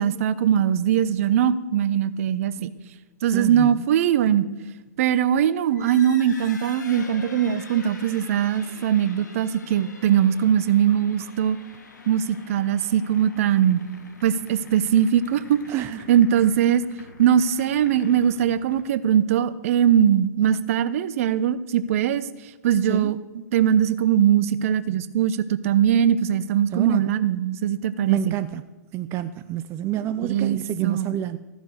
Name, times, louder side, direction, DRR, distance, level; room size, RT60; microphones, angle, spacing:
voice 1, 0.0-2.7 3.2-4.5 5.0-11.6 12.1-13.8 14.2-15.6 16.1-16.8 17.2-22.3 22.6-28.3 30.2-31.2, right 9 dB, 50° right, 15 dB, 0.9 m, -21 dB
voice 2, 3.3-3.7 15.7-16.1 22.8-23.1 26.7-27.0 28.1-28.6 28.9-31.4, right 12 dB, 25° right, 13 dB, 0.6 m, -28 dB
sound 1, 5.6-19.1, left 3 dB, 75° left, 2.7 m, -45 dB
15.0 x 10.0 x 6.5 m, 1.1 s
figure-of-eight pair, 115°, 10 cm